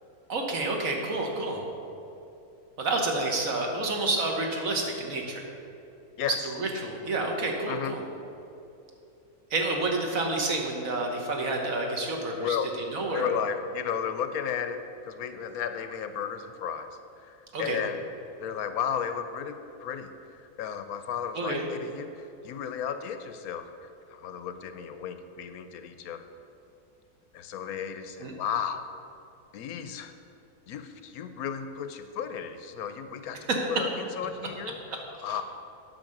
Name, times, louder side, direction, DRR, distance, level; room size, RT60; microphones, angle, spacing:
voice 1, 0.3-1.6 2.8-5.4 6.4-8.0 9.5-12.6 12.9-13.3 17.5-17.8 21.3-21.6 28.2-28.3 33.5-33.6, right 2 dB, 60° right, 1 dB, 1.5 m, -29 dB
voice 2, 7.7-8.0 12.4-12.7 13.1-16.9 17.2-18.0 18.4-26.3 27.3-28.9 29.5-30.1 30.7-33.4 33.7-35.4, left 8 dB, 75° left, 9 dB, 1.0 m, -34 dB
8.8 x 5.7 x 6.6 m, 2.8 s
omnidirectional pair, 1.6 m